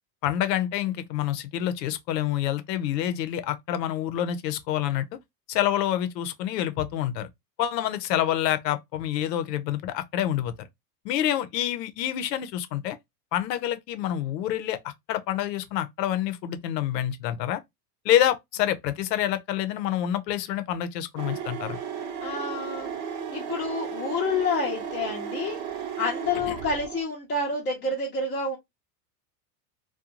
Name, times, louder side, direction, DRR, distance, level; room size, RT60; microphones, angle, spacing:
voice 1, 0.2-5.1 5.5-7.3 7.6-10.5 11.0-13.0 13.3-14.8 15.1-17.6 18.0-21.8 26.5-26.6, left 11 dB, 80° left, 0.7 m, -27 dB
sound 1, 21.2-27.0, right 7 dB, 55° right, 0.9 m, -34 dB
voice 2, 22.2-22.9 23.3-25.6 26.0-28.6, left 3 dB, 20° left, 0.6 m, -28 dB
2.4 x 2.2 x 2.8 m
supercardioid pair, 120°, 49 cm